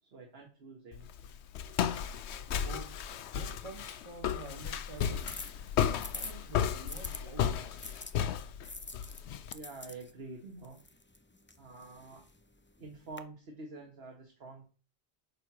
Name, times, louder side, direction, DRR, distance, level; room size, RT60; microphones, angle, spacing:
voice 1, 0.0-1.3 9.5-10.8 11.6-12.3 12.8-14.6, right 3 dB, 60° right, 1.7 m, -47 dB
Walk footsteps, 0.9-9.5, left 9 dB, 75° left, 0.9 m, -34 dB
voice 2, 2.5-3.0 3.3-5.4 5.9-7.8, right 2 dB, 25° right, 1.6 m, -48 dB
sound 1, 3.0-7.2 7.8-13.2, left 2 dB, 15° left, 0.4 m, -48 dB
8.9 x 4.6 x 6.0 m
omnidirectional pair, 1.2 m